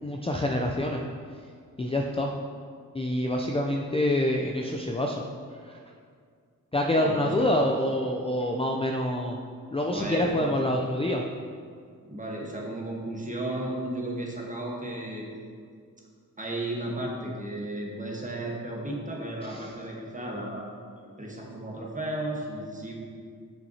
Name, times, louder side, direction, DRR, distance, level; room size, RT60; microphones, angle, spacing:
voice 1, 0.0-1.0 1.8-2.3 2.9-5.2 5.7-5.8 6.7-9.4 9.7-11.2 19.5-19.7, left 1 dB, 15° left, 0 dB, 0.4 m, -26 dB
voice 2, 7.0-7.5 9.9-10.6 12.0-15.2 16.4-20.7 21.0-23.0, right 1 dB, 20° right, -2 dB, 1.3 m, -34 dB
6.5 x 5.9 x 2.8 m, 2.1 s
cardioid pair, 55°, 35 cm